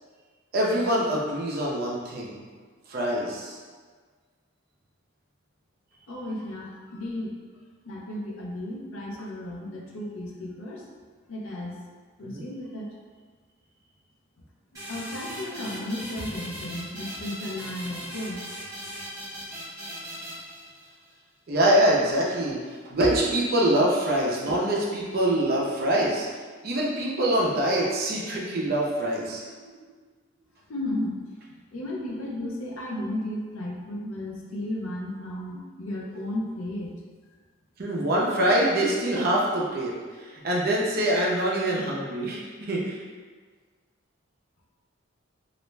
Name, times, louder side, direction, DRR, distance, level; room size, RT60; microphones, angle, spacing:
voice 1, 0.5-2.5 2.9-3.6 12.2-12.4 21.5-26.3 26.6-29.5 37.8-43.0, right 1 dB, 45° right, -4 dB, 0.5 m, -25 dB
voice 2, 6.1-7.3 7.8-10.8 11.3-11.8 12.2-12.9 14.9-18.4 30.7-31.2 31.7-37.0, left 1 dB, 80° left, -2 dB, 0.5 m, -34 dB
sound 1, 14.7-21.1, equal, 15° right, 0.9 m, -39 dB
2.4 x 2.1 x 3.1 m, 1.5 s
head